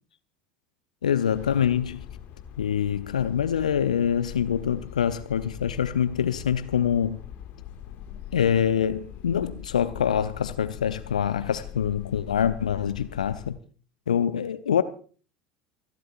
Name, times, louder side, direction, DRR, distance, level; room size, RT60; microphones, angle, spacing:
voice 1, 1.0-2.1 2.6-7.2 8.3-13.6 14.1-14.8, left 8 dB, 75° left, 0.6 m, -25 dB
sound 1, 1.3-13.5, left 10 dB, 45° left, 2.0 m, -42 dB
28.5 x 11.5 x 2.5 m
figure-of-eight pair, 70°, 4 cm